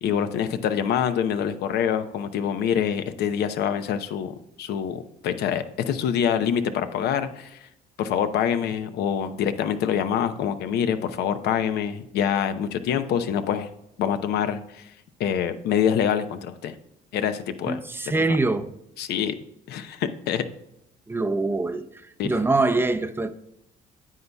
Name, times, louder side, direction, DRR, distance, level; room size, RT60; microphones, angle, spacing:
voice 1, 0.0-7.6 8.0-13.7 14.0-14.8 15.2-16.8 17.1-17.8 18.1-18.2 19.0-19.4 19.7-20.4 22.2-22.3, left 8 dB, 75° left, 0.8 m, -25 dB
voice 2, 17.7-18.7 21.1-21.8 22.2-23.3, right 3 dB, 15° right, 0.6 m, -24 dB
9.3 x 8.2 x 2.3 m
cardioid pair, 110°, 17 cm